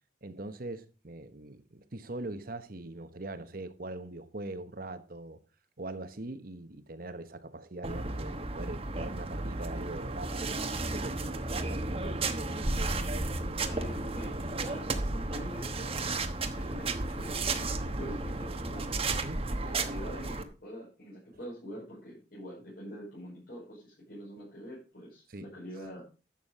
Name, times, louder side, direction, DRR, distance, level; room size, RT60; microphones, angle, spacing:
voice 1, 0.2-5.4 5.8-12.3 19.1-19.5 25.3-25.5, right 2 dB, 50° right, 1.1 m, -42 dB
sound 1, 7.8-20.4, right 2 dB, 35° right, 1.1 m, -33 dB
voice 2, 11.8-12.2 13.6-15.7 16.5-18.9 19.6-26.0, equal, 55° left, 5.5 m, -45 dB
11.5 x 7.4 x 4.8 m
head